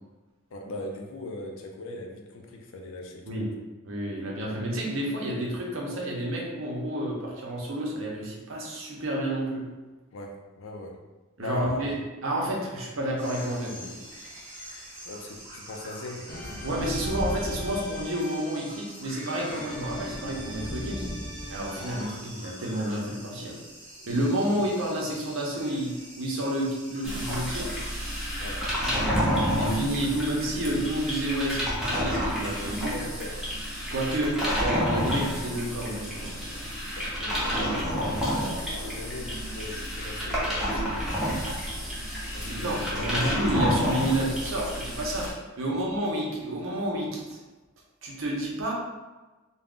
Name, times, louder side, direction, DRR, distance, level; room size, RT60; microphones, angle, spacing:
voice 1, 0.5-3.5 10.1-11.0 11.4-11.8 15.0-16.3 24.0-24.1 28.4-28.7 32.9-33.5 37.0-41.2 42.3-43.5 45.6-45.8, left 2 dB, 70° left, 2 dB, 0.4 m, -39 dB
voice 2, 3.8-9.7 11.4-12.0 12.2-13.9 16.6-21.1 21.5-23.5 24.1-27.7 28.8-29.2 29.5-33.0 33.9-36.6 42.4-45.3 45.6-47.4 48.0-48.7, right 1 dB, 75° right, -2 dB, 0.7 m, -30 dB
sound 1, 13.2-28.2, equal, 40° right, 0.9 m, -46 dB
sound 2, 16.3-22.0, equal, 50° left, 0.8 m, -36 dB
sound 3, 27.0-45.3, equal, ahead, 0.6 m, -29 dB
2.4 x 2.1 x 3.5 m, 1.2 s
head